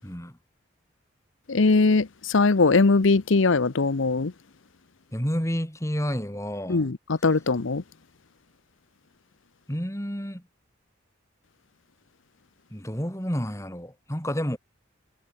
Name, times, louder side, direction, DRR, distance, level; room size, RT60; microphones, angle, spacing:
voice 1, 0.0-0.4 5.1-6.9 9.7-10.4 12.7-14.6, equal, 15° left, 6.3 m, -30 dB
voice 2, 1.5-4.3 6.7-6.9 7.2-7.8, left 3 dB, 80° left, 0.8 m, -20 dB
head